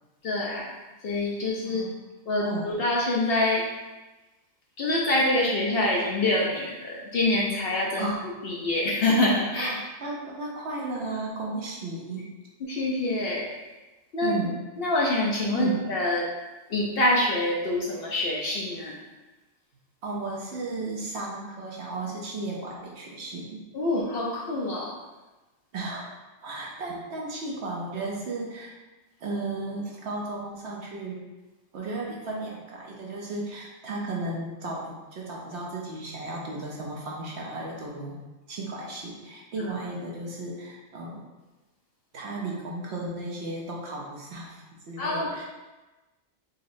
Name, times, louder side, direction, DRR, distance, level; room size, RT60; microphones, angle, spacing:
voice 1, 0.2-0.7 1.0-1.8 2.3-3.6 4.8-8.1 8.4-9.7 12.6-13.5 14.1-14.4 14.8-16.2 16.7-18.9 23.7-24.9 45.0-45.3, left 2 dB, 60° left, -3 dB, 0.7 m, -25 dB
voice 2, 1.6-2.0 2.4-2.7 8.0-8.3 9.6-12.3 14.2-14.6 15.5-15.8 20.0-23.6 25.7-26.2 26.4-28.7 29.2-31.2 31.7-38.2 38.5-41.2 42.1-45.4, right 2 dB, 65° right, -2 dB, 0.8 m, -34 dB
4.1 x 2.9 x 2.5 m, 1.1 s
omnidirectional pair, 1.3 m